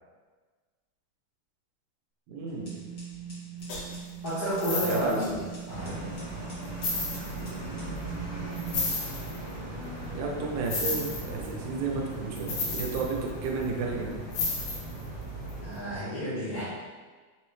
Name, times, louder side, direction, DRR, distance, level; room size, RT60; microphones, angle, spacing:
voice 1, 2.3-2.8 4.8-5.2 7.3-8.0 10.1-14.3 14.6-14.8, right 4 dB, 85° right, 0 dB, 2.4 m, -33 dB
sound 1, 2.5-8.7, right 6 dB, 55° left, 0.9 m, -41 dB
sound 2, 3.7-3.9 4.5-5.2 6.0-6.1 6.7-7.5 8.5-9.4 10.7-11.5 12.4-13.7 14.3-15.1 15.5-15.6, left 3 dB, 90° left, 2.8 m, -32 dB
voice 2, 4.2-6.1 15.6-16.7, equal, 75° left, -13 dB, 1.4 m, -31 dB
sound 3, 5.7-16.0, right 2 dB, 65° right, 1.0 m, -38 dB
6.0 x 2.0 x 3.1 m, 1.4 s
omnidirectional pair, 4.0 m